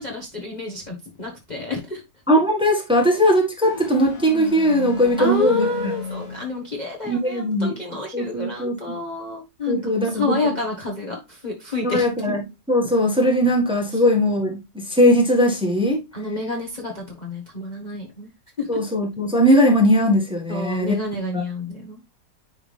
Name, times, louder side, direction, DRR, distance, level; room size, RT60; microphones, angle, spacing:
voice 1, 0.0-2.0 5.2-12.1 13.9-14.0 16.1-18.3 18.6-18.7 20.5-22.0, left 3 dB, 25° left, 1.3 m, -29 dB
voice 2, 2.3-5.9 7.0-7.7 8.1-8.8 9.7-10.4 11.8-12.4 12.7-16.0 18.7-21.0, equal, 5° right, 1.6 m, -19 dB
sound 1, 3.6-6.7, left 4 dB, 50° left, 2.4 m, -34 dB
10.0 x 3.6 x 3.4 m
omnidirectional pair, 1.9 m